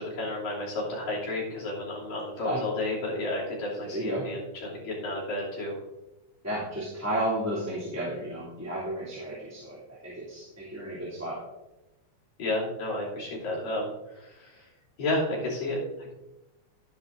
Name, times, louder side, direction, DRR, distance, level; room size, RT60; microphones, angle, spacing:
voice 1, 0.0-5.8 12.4-14.7 15.0-16.1, left 2 dB, 70° left, -6 dB, 4.4 m, -32 dB
voice 2, 3.8-4.3 6.4-11.4, right 1 dB, 5° right, -9 dB, 2.5 m, -33 dB
12.5 x 10.0 x 2.6 m, 1.0 s
omnidirectional pair, 3.4 m